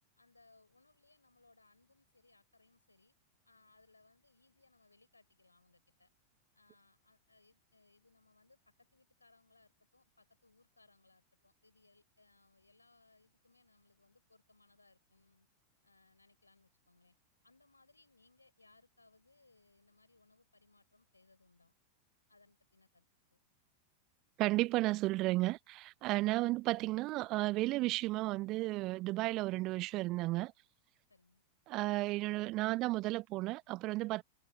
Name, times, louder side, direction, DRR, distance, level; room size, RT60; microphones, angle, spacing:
voice 1, 0.2-3.1 3.4-6.1 6.5-15.5 15.8-17.2 17.4-21.7 22.3-23.4 31.1-31.4, left 3 dB, 80° left, 5.9 m, -68 dB
voice 2, 24.4-30.5 31.7-34.2, right 19 dB, 40° right, 0.4 m, -33 dB
figure-of-eight pair, 90°, 0 cm